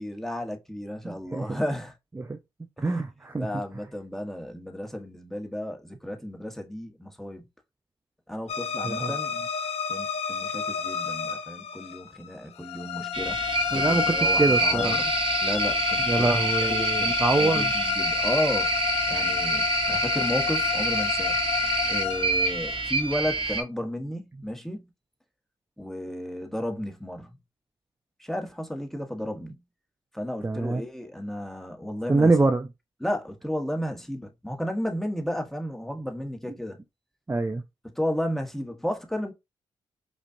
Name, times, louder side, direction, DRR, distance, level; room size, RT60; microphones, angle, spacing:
voice 1, 0.0-1.9 2.8-3.0 3.4-7.4 8.3-9.3 9.9-15.1 15.4-16.3 16.6-18.8 19.1-21.4 21.9-24.9 25.8-27.3 28.2-29.6 30.1-32.3 33.0-36.8 37.8-39.3, equal, 5° left, 1.3 m, -33 dB
voice 2, 1.0-1.6 2.2-2.4 2.8-3.5 8.8-9.1 13.7-15.0 16.1-17.7 30.4-30.8 32.1-32.7 37.3-37.6, right 3 dB, 20° right, 0.5 m, -25 dB
sound 1, 8.5-23.6, left 10 dB, 65° left, 0.6 m, -30 dB
sound 2, 13.1-23.6, right 4 dB, 55° right, 1.0 m, -27 dB
5.0 x 2.5 x 2.6 m
hypercardioid pair, 45°, 11 cm